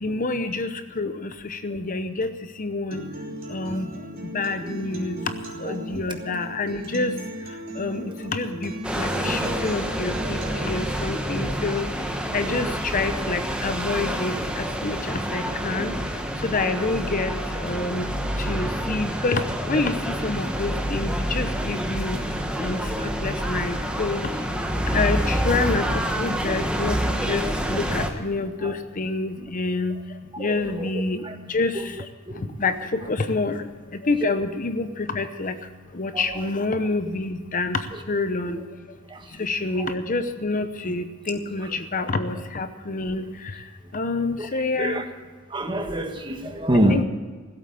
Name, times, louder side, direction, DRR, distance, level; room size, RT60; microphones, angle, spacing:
voice 1, 0.0-0.7 1.0-2.3 2.6-3.0 3.5-3.9 4.3-5.2 5.6-7.1 7.8-11.9 12.3-15.9 16.4-18.0 18.5-19.4 19.7-22.2 22.6-22.8 23.2-24.3 24.9-25.9 26.1-30.0 30.4-31.2 31.5-31.7 32.6-33.6 34.0-35.5 35.9-37.8 38.1-38.6 39.4-43.2 43.9-45.0 46.9-47.0, left 3 dB, 40° left, 9 dB, 0.8 m, -27 dB
Acoustic guitar, 2.9-10.9, equal, 45° right, 3.3 m, -36 dB
voice 2, 5.7-6.0 11.3-11.5 12.4-12.5 15.7-16.0 18.4-18.7 22.9-23.4 28.6-28.7 30.4-30.9 31.2-31.3 32.3-32.6 36.1-36.2 39.1-39.2 39.8-39.9 44.4-44.5 44.8-45.0 45.5-47.0, equal, 25° right, 5 dB, 1.4 m, -27 dB
sound 1, 8.8-28.1, equal, 5° right, 1.2 m, -27 dB
16.0 x 8.5 x 9.2 m, 1.4 s
head